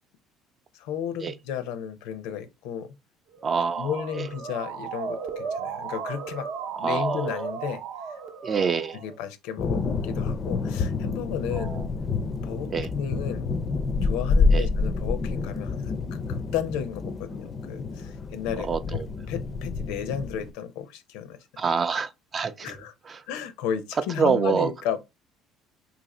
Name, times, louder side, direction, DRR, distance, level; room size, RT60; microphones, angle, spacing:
voice 1, 0.7-2.9 3.8-6.5 6.8-7.8 9.0-11.7 12.4-13.5 14.0-16.0 16.3-21.6 22.6-22.9 23.3-25.1, left 8 dB, 85° left, 0.5 m, -33 dB
Motor vehicle (road) / Siren, 3.3-9.2, right 6 dB, 60° right, 0.7 m, -35 dB
voice 2, 3.4-4.3 6.8-7.5 8.4-9.0 11.5-11.9 12.7-12.9 14.5-14.7 18.6-19.1 21.6-22.7 23.1-23.2 24.2-24.7, right 5 dB, 30° right, 0.4 m, -26 dB
sound 1, 9.6-20.5, left 4 dB, 30° left, 0.4 m, -28 dB
2.8 x 2.5 x 4.1 m
cardioid pair, 130°, 0 cm